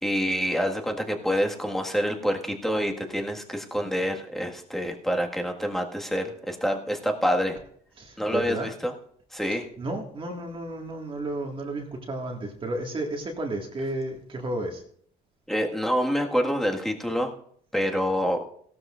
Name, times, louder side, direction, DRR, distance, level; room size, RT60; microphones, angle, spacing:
voice 1, 0.0-7.6 8.2-8.9 9.3-9.6 15.5-17.3 17.7-18.4, equal, ahead, 2 dB, 1.7 m, -27 dB
voice 2, 8.0-8.7 9.5-14.8, right 2 dB, 30° right, 1 dB, 1.9 m, -32 dB
16.5 x 12.5 x 2.5 m, 0.64 s
cardioid pair, 110°, 17 cm